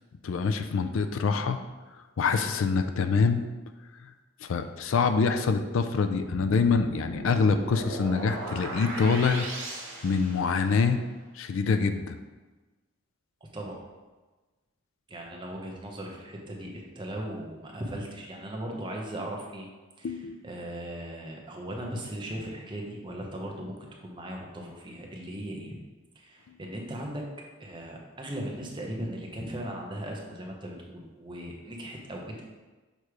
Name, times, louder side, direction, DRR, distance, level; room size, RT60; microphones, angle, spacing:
voice 1, 0.2-1.6 2.2-3.4 4.4-9.5 10.0-11.0 11.4-12.2 20.0-20.5, left 5 dB, 65° left, 9 dB, 0.4 m, -25 dB
sound 1, 6.2-10.9, right 1 dB, 65° right, 1.7 m, -38 dB
voice 2, 13.5-13.8 15.1-19.7 20.0-23.7 24.0-25.7 26.2-27.2 27.6-32.4, right 1 dB, 20° right, 0 dB, 0.8 m, -38 dB
6.7 x 3.1 x 4.7 m, 1.2 s
head